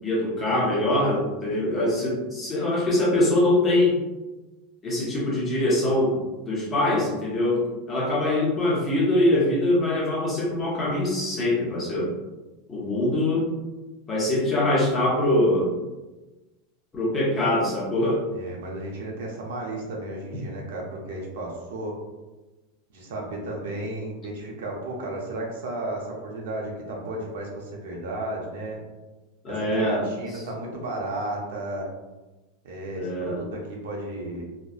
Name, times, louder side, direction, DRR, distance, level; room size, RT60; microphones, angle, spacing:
voice 1, 0.0-4.0 4.8-12.1 12.7-13.5 14.1-15.7 16.9-18.3 29.4-30.1 33.0-33.4, left 1 dB, 15° left, -5 dB, 0.6 m, -23 dB
voice 2, 18.3-21.9 22.9-28.8 29.5-31.9 32.6-34.4, right 1 dB, 75° right, -1 dB, 0.6 m, -33 dB
2.6 x 2.1 x 2.3 m, 1.1 s
supercardioid pair, 180°, 0 cm